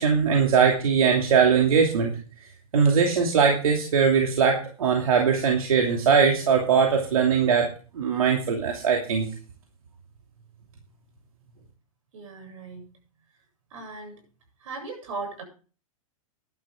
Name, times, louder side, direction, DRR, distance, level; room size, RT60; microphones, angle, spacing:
voice 1, 0.0-2.1 2.7-7.7 7.9-9.3, right 6 dB, 85° right, 1 dB, 2.8 m, -21 dB
voice 2, 12.1-12.9 13.7-14.2 14.6-15.4, right 3 dB, 65° right, 3 dB, 7.8 m, -37 dB
13.0 x 11.5 x 3.7 m, 0.38 s
hypercardioid pair, 150°, 18 cm